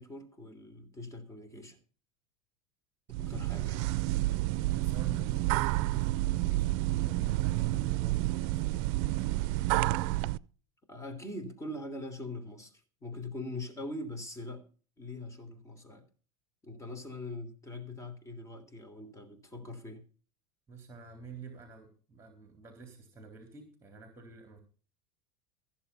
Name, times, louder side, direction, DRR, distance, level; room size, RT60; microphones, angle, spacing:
voice 1, 0.0-1.8 3.2-3.9 10.9-14.6 15.0-16.0 16.6-20.0, left 2 dB, 15° left, 3.2 m, -42 dB
sound 1, 3.1-10.4, right 17 dB, 60° right, 0.6 m, -30 dB
voice 2, 4.7-8.7 20.7-24.6, right 4 dB, 15° right, 3.8 m, -49 dB
15.5 x 7.3 x 5.6 m
supercardioid pair, 110°, 18 cm